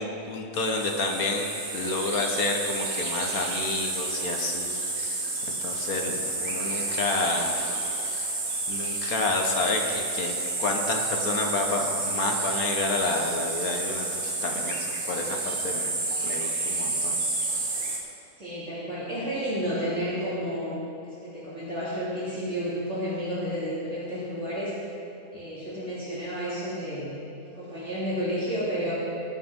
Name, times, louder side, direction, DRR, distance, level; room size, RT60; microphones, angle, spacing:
voice 1, 0.0-1.5 1.7-5.2 5.6-7.5 8.1-8.3 8.7-10.3 10.6-15.9 16.2-17.2, left 3 dB, 65° left, 2 dB, 1.8 m, -30 dB
sound 1, 0.5-18.0, right 2 dB, 65° right, 2.2 m, -30 dB
voice 2, 18.4-24.8 25.3-28.9, equal, 45° right, -10 dB, 2.9 m, -31 dB
20.0 x 9.3 x 3.8 m, 2.8 s
omnidirectional pair, 1.7 m